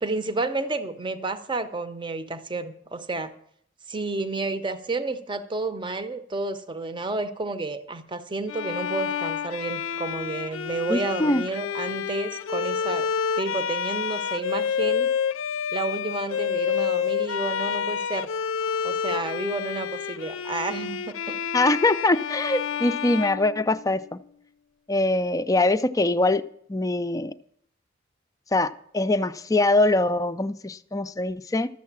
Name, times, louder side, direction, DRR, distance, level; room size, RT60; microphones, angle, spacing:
voice 1, 0.0-3.3 3.9-13.1 13.4-15.1 15.7-18.3 18.8-21.4, right 3 dB, 25° right, 0.7 m, -31 dB
Bowed string instrument, 8.5-24.2, left 7 dB, 85° left, 0.5 m, -29 dB
voice 2, 10.9-11.4 21.5-24.2 24.9-26.4 26.7-27.3 28.5-31.7, left 2 dB, 15° left, 0.4 m, -23 dB
12.5 x 7.5 x 7.3 m
head